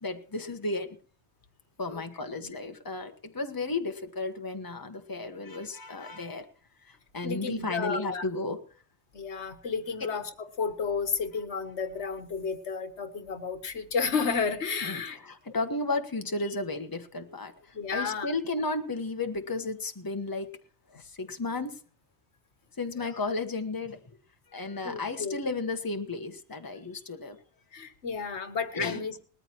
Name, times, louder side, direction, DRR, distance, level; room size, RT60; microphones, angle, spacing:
voice 1, 0.0-1.0 1.8-6.5 6.8-8.6 10.0-10.1 14.8-20.6 20.9-21.8 22.8-24.0 24.5-27.4 28.7-29.0, left 3 dB, 20° left, 6 dB, 1.2 m, -33 dB
voice 2, 7.2-8.3 9.1-15.2 15.5-15.6 17.7-18.3 23.0-23.1 24.8-25.4 27.7-29.1, left 5 dB, 75° left, 9 dB, 1.5 m, -32 dB
20.5 x 14.0 x 3.0 m, 0.42 s
omnidirectional pair, 1.2 m